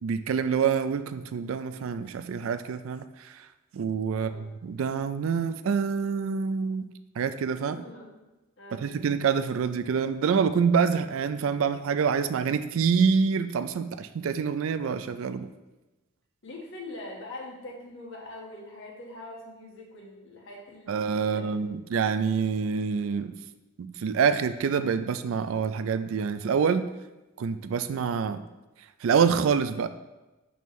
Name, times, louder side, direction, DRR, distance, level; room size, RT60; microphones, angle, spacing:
voice 1, 0.0-3.5 3.7-6.9 7.2-7.8 8.7-15.5 20.9-23.3 23.8-26.9 27.4-28.4 29.0-29.9, right 6 dB, 75° right, 11 dB, 0.4 m, -26 dB
voice 2, 4.1-4.5 7.7-8.3 8.6-9.2 16.4-21.6, left 1 dB, 65° left, -3 dB, 1.5 m, -43 dB
6.0 x 5.4 x 3.1 m, 1.1 s
head